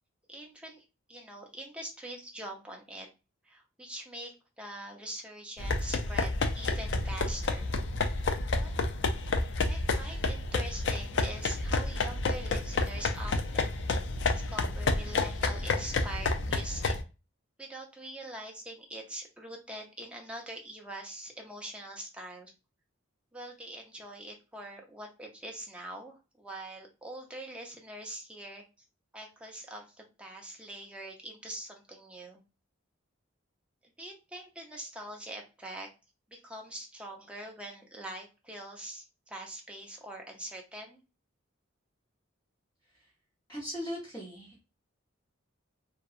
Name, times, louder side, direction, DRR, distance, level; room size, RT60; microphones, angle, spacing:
voice 1, 0.3-3.1 3.4-7.8 8.5-8.7 9.7-13.8 14.2-17.0 17.6-22.5 23.3-28.6 29.1-32.4 34.0-35.9 36.3-41.0, right 1 dB, 5° right, 0 dB, 0.5 m, -43 dB
sound 1, 5.6-17.0, left 3 dB, 60° left, 0.4 m, -30 dB
voice 2, 43.5-44.7, equal, 15° left, -8 dB, 0.8 m, -39 dB
2.7 x 2.2 x 2.3 m, 0.30 s
head